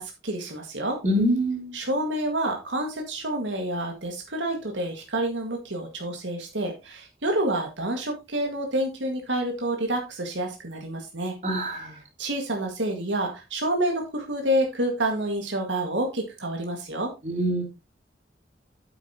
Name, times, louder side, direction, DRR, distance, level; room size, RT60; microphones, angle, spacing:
voice 1, 0.0-1.0 1.7-11.3 11.7-11.9 12.2-17.1, right 1 dB, 85° right, 2 dB, 1.9 m, -28 dB
voice 2, 1.0-1.7 11.4-11.9 17.2-17.6, equal, 40° right, 0 dB, 3.4 m, -24 dB
9.0 x 8.4 x 2.9 m, 0.25 s
head